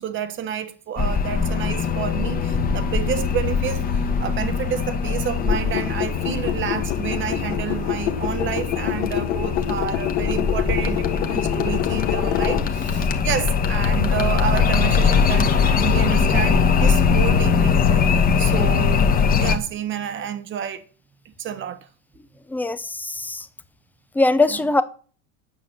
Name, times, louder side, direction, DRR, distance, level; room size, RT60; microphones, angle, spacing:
voice 1, 0.0-19.1 19.4-20.8 21.2-21.9 24.5-24.6, right 9 dB, 30° right, 1.2 m, -29 dB
sound 1, 1.0-19.6, left 6 dB, 25° left, 1.3 m, -21 dB
sound 2, 5.4-13.1, left 12 dB, 85° left, 1.6 m, -27 dB
voice 2, 22.5-23.5 24.2-24.8, left 2 dB, 5° left, 0.5 m, -21 dB
9.1 x 7.0 x 7.6 m
cardioid pair, 155°, 37 cm